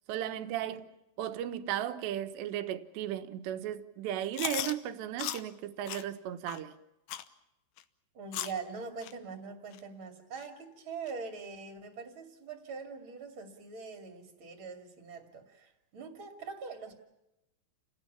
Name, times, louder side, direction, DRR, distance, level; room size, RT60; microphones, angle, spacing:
voice 1, 0.1-0.8 1.2-6.7, right 11 dB, 75° right, 3.2 m, -35 dB
Chewing mastication, 4.3-4.7 5.2-5.4 5.9-6.0 6.5-6.6 7.1-7.3 7.8-7.9 8.3-8.6 9.0-9.1 9.7-9.8 10.4-10.5 11.1-11.2, left 12 dB, 75° left, 2.5 m, -36 dB
voice 2, 8.1-16.9, right 5 dB, 35° right, 2.5 m, -43 dB
29.5 x 18.5 x 7.1 m
omnidirectional pair, 5.2 m